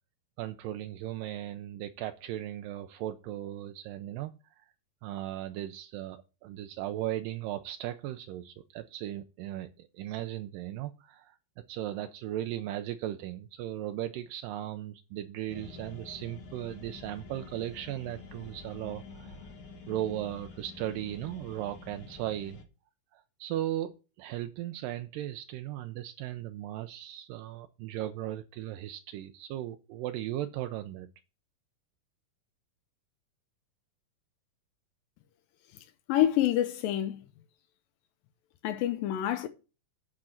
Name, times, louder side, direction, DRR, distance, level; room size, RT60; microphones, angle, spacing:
voice 1, 0.4-4.7 5.0-11.4 11.7-19.5 19.9-22.6 23.1-31.1, right 13 dB, 80° right, 2.2 m, -37 dB
sound 1, 15.5-22.6, left 4 dB, 55° left, 1.7 m, -48 dB
voice 2, 35.7-37.2 38.6-39.5, left 12 dB, 85° left, 2.4 m, -28 dB
10.0 x 3.7 x 7.2 m
omnidirectional pair, 4.0 m